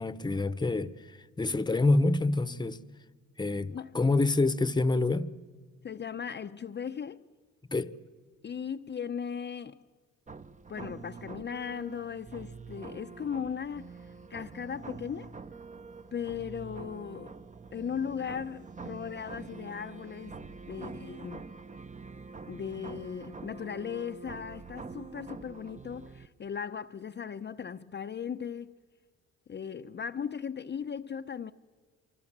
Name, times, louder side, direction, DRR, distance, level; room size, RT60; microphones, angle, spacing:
voice 1, 0.0-2.8 3.4-5.3 7.7-7.9, left 2 dB, 15° left, 1.0 m, -27 dB
voice 2, 5.8-7.3 8.4-9.8 10.7-15.3 16.1-17.3 17.7-21.5 22.5-28.7 29.5-31.5, left 7 dB, 35° left, 0.8 m, -37 dB
sound 1, 10.3-26.3, right 4 dB, 25° right, 1.0 m, -45 dB
26.5 x 24.5 x 7.4 m
cardioid pair, 90°, 30 cm